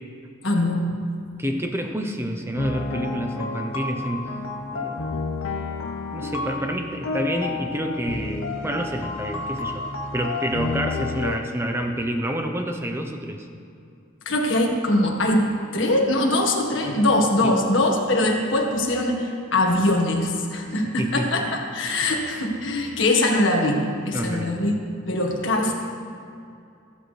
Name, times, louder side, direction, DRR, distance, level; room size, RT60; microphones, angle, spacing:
voice 1, 0.4-0.9 14.2-24.7 25.1-25.7, left 1 dB, 65° left, 0 dB, 1.7 m, -22 dB
voice 2, 1.4-4.3 4.7-5.0 6.1-9.8 10.1-13.5 17.4-17.5 21.0-21.3 24.1-24.6, equal, 10° right, 4 dB, 0.8 m, -28 dB
sound 1, 2.6-11.4, left 3 dB, 85° left, 0.8 m, -30 dB
15.0 x 12.0 x 3.3 m, 2.5 s
head